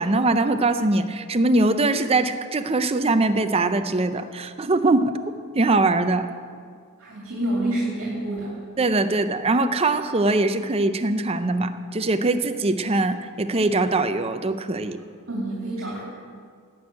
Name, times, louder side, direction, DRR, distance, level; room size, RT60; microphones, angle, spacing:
voice 1, 0.0-5.1 5.6-6.3 8.8-15.0, right 2 dB, 25° right, 9 dB, 0.6 m, -22 dB
voice 2, 7.0-8.6 15.3-16.0, right 1 dB, 60° right, -5 dB, 2.6 m, -27 dB
18.0 x 6.4 x 8.6 m, 2.1 s
head